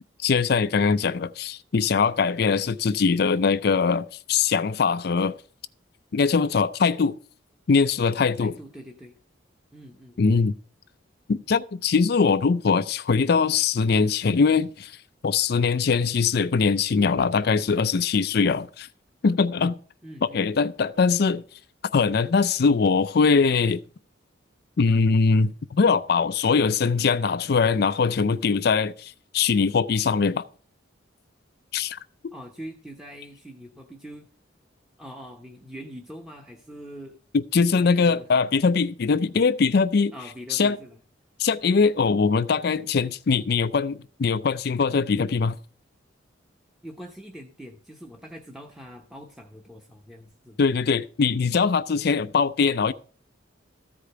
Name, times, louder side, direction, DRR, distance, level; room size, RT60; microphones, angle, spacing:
voice 1, 0.2-5.4 6.1-7.2 7.7-8.5 10.2-10.5 11.3-15.0 15.2-18.9 19.2-19.8 20.2-21.4 21.9-23.8 24.8-30.5 31.7-32.0 37.3-40.1 40.5-40.8 41.4-45.6 50.6-52.9, left 5 dB, 55° left, 0.4 m, -22 dB
voice 2, 8.4-9.1 9.7-10.5 20.0-20.4 32.3-34.3 35.0-37.2 37.6-38.2 40.1-41.0 46.8-50.6, equal, ahead, 0.9 m, -43 dB
14.0 x 5.0 x 6.7 m
head